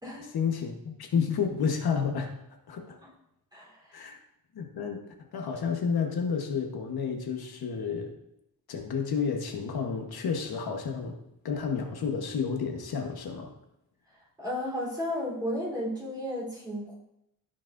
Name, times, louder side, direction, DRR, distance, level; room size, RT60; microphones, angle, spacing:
voice 1, 0.3-2.3 2.7-3.0 3.9-4.2 4.5-5.1 5.3-8.1 8.7-11.2 11.4-13.5, left 6 dB, 80° left, 3 dB, 1.2 m, -30 dB
voice 2, 3.5-4.1 14.4-16.9, left 1 dB, 10° right, -5 dB, 3.5 m, -34 dB
15.5 x 6.0 x 2.6 m, 0.82 s
wide cardioid pair, 155°, 37 cm